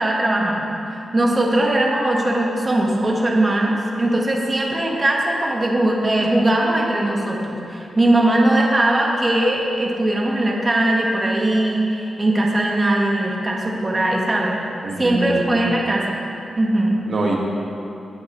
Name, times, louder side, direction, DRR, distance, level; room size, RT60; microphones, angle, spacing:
voice 1, 0.0-14.6 15.0-16.2 16.6-17.0, right 1 dB, 25° right, -2 dB, 1.4 m, -20 dB
voice 2, 14.8-15.7 17.1-17.4, right 2 dB, 50° right, -2 dB, 1.4 m, -24 dB
18.5 x 9.2 x 3.1 m, 2.7 s
wide cardioid pair, 140°, 0 cm